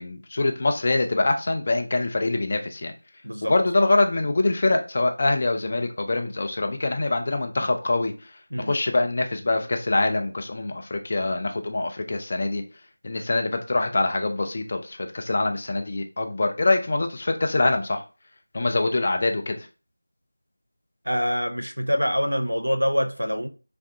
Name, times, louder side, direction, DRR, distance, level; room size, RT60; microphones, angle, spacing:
voice 1, 0.0-2.9 3.4-8.1 8.6-12.6 13.0-18.0 18.5-19.6, left 2 dB, 35° left, 0.3 m, -24 dB
voice 2, 3.2-3.5 8.5-8.7 21.0-23.5, equal, 90° right, 0.6 m, -25 dB
2.3 x 2.2 x 2.6 m
figure-of-eight pair, 170°, 0 cm